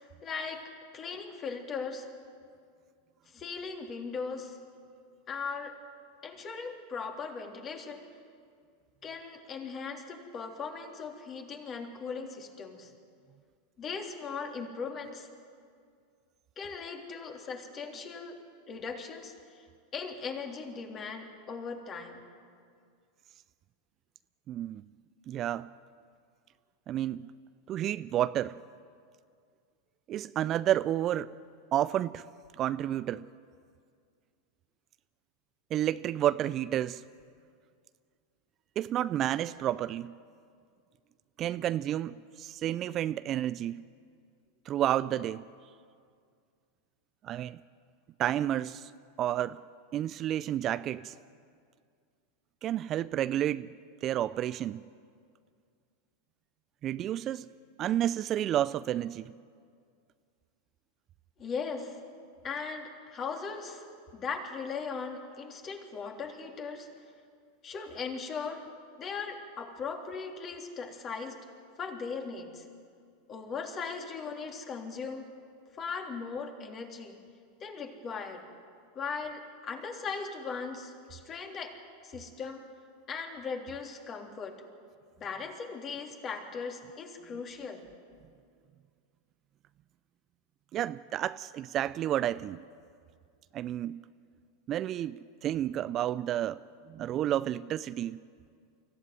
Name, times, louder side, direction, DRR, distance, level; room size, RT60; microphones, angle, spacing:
voice 1, 0.2-2.1 3.3-4.6 5.3-5.7 6.2-8.1 9.0-12.9 13.8-15.3 16.6-18.4 18.7-19.7 19.9-22.2 61.4-62.0 62.4-63.8 64.1-66.9 67.6-68.6 69.0-71.4 71.8-72.7 73.3-75.3 75.8-77.2 77.6-78.4 78.9-81.8 82.0-82.6 83.1-84.6 85.2-87.8, left 5 dB, 35° left, 3.3 m, -38 dB
voice 2, 24.5-24.8 25.3-25.7 26.9-27.3 27.7-28.6 30.1-31.4 31.7-32.2 32.6-33.2 35.7-37.0 38.8-40.2 41.4-43.8 44.7-45.4 47.2-47.6 48.2-48.9 49.2-49.6 49.9-51.1 52.6-53.7 54.0-54.8 56.8-57.5 57.8-59.3 90.7-92.6 93.5-94.0 94.7-96.6 96.9-98.2, right 12 dB, 40° right, 0.4 m, -30 dB
23.5 x 15.0 x 9.6 m
hypercardioid pair, 95°, 0 cm